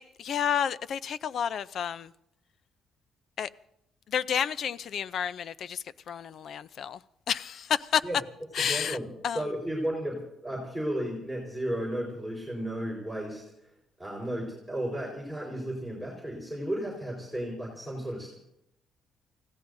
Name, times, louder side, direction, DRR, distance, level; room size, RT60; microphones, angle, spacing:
voice 1, 0.0-2.1 3.4-3.5 4.1-7.0 7.3-8.0 8.5-9.0 9.2-9.4, left 8 dB, 65° left, 0.5 m, -30 dB
voice 2, 8.7-13.4 14.0-18.3, right 1 dB, 5° left, 4.6 m, -34 dB
29.5 x 17.0 x 2.7 m
cardioid pair, 90°, 0 cm